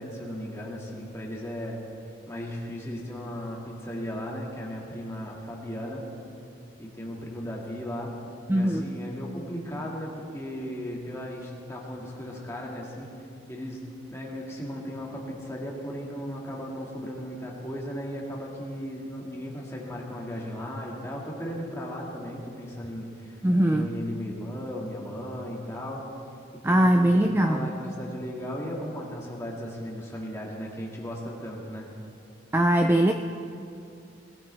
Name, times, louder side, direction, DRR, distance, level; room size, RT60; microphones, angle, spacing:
voice 1, 0.0-1.8 2.3-6.0 6.8-8.1 8.5-13.1 13.5-13.8 14.1-26.0 26.6-31.9, equal, 15° left, -3 dB, 1.9 m, -36 dB
voice 2, 8.5-8.9 23.4-23.9 26.6-27.7 32.5-33.1, right 1 dB, 10° right, 5 dB, 0.4 m, -21 dB
19.5 x 15.0 x 3.4 m, 2.5 s
head